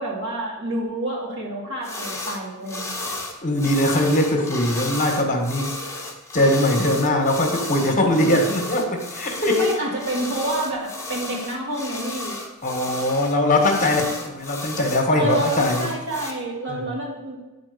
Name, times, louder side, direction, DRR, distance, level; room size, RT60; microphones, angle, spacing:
voice 1, 0.0-3.1 9.5-12.4 15.2-17.4, right 1 dB, 55° right, -3 dB, 2.5 m, -28 dB
sound 1, 1.8-2.4 2.7-16.3, left 2 dB, 15° left, 1.4 m, -33 dB
voice 2, 3.4-5.7 6.3-9.7 12.6-15.8 16.7-16.8, left 1 dB, 35° left, 2 dB, 1.5 m, -21 dB
9.6 x 4.4 x 6.7 m, 1.1 s
head